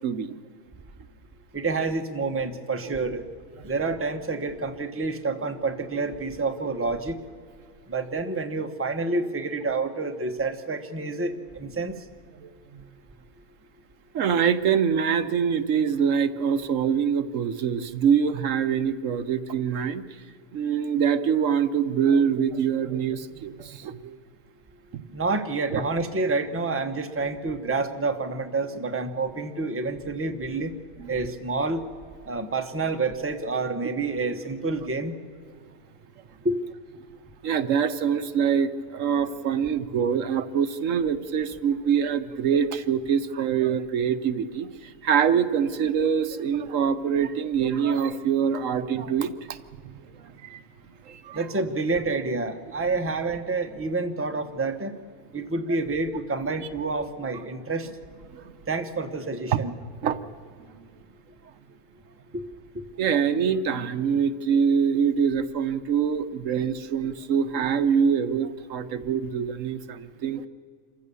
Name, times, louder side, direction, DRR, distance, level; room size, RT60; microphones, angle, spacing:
voice 1, 0.0-0.3 2.8-2.9 12.4-12.8 14.1-20.0 20.5-24.2 25.7-25.8 31.0-31.1 37.4-49.6 49.8-49.9 50.2-50.6 51.1-51.4 58.3-58.5 60.0-60.2 63.0-70.5, right 7 dB, 70° right, 11 dB, 1.1 m, -25 dB
voice 2, 1.5-3.3 3.6-7.2 7.9-12.0 25.1-30.7 31.1-31.8 32.3-35.1 36.4-36.6 51.3-55.0 55.3-57.9 58.7-59.7 62.3-62.4, right 3 dB, 10° right, 5 dB, 0.9 m, -28 dB
27.0 x 15.0 x 6.9 m, 2.1 s
omnidirectional pair, 1.4 m